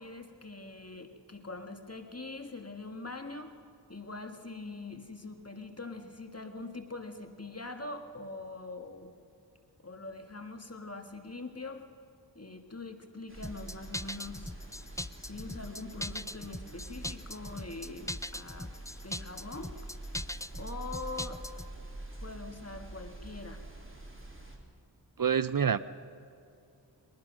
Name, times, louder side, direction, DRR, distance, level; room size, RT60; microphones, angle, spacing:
voice 1, 0.0-3.6 3.9-9.1 9.8-11.8 12.4-14.5 15.2-18.7 19.0-19.8 20.6-21.4 22.2-23.6, left 3 dB, 35° left, 5 dB, 1.7 m, -43 dB
sound 1, 13.3-24.6, right 1 dB, 30° right, 3.1 m, -46 dB
sound 2, 13.4-21.7, left 1 dB, 10° left, 0.4 m, -40 dB
voice 2, 25.2-25.8, right 7 dB, 50° right, 15 dB, 0.6 m, -26 dB
21.5 x 19.5 x 6.2 m, 2.5 s
wide cardioid pair, 40°, 43 cm